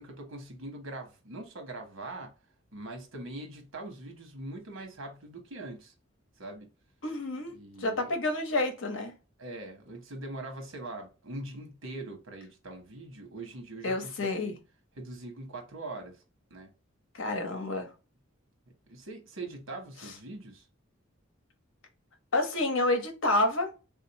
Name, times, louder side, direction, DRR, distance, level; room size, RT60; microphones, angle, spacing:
voice 1, 0.0-2.3 2.7-5.9 6.4-6.7 7.5-8.1 9.4-14.6 15.0-16.2 16.5-16.7 18.9-20.7, right 2 dB, 85° right, 1.0 m, -42 dB
voice 2, 7.0-9.1 13.8-14.6 17.1-17.9 22.3-23.7, left 2 dB, 75° left, 0.9 m, -29 dB
3.6 x 2.5 x 2.8 m
head